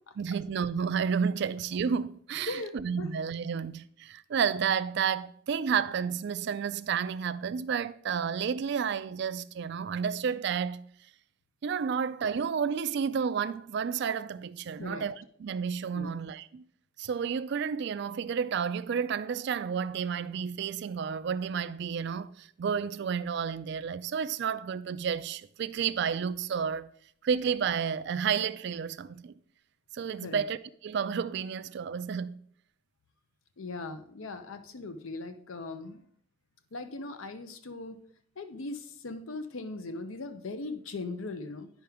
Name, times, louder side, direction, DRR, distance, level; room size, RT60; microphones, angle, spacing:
voice 1, 0.2-10.8 11.6-16.6 17.0-26.9 27.2-29.3 29.9-32.4, right 7 dB, 55° right, 0.3 m, -31 dB
voice 2, 2.5-3.1 3.5-3.6 14.8-15.0 15.9-16.2 30.2-30.4 33.6-36.0 36.7-38.0 38.4-41.7, left 3 dB, 80° left, 0.7 m, -39 dB
8.9 x 5.7 x 3.5 m
head